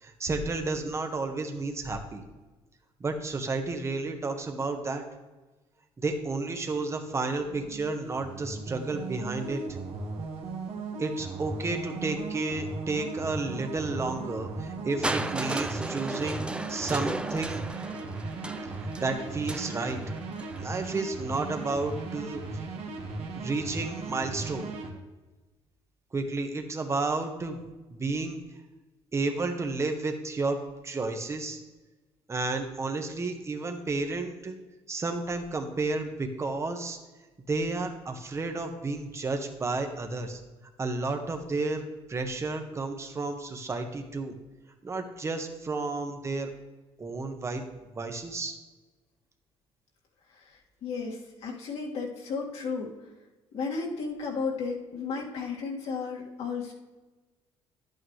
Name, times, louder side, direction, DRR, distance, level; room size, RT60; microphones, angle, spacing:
voice 1, 0.0-2.2 3.0-5.0 6.0-9.6 11.0-16.4 16.7-17.6 19.0-20.0 20.6-22.4 23.3-24.7 26.1-27.6 27.9-28.4 29.1-31.6 32.3-34.6 34.9-37.0 37.5-40.4 40.8-41.8 42.1-44.3 44.8-46.5 47.0-47.6 48.0-48.5, right 3 dB, 25° right, 5 dB, 1.3 m, -31 dB
sound 1, 7.2-24.9, right 3 dB, 65° right, 1.8 m, -37 dB
Crushing, 15.0-20.9 21.9-22.0, right 2 dB, 10° right, 0.4 m, -35 dB
voice 2, 50.3-52.9 53.5-56.7, left 4 dB, 70° left, -2 dB, 2.1 m, -34 dB
11.0 x 8.8 x 3.2 m, 1.2 s
cardioid pair, 105°, 11 cm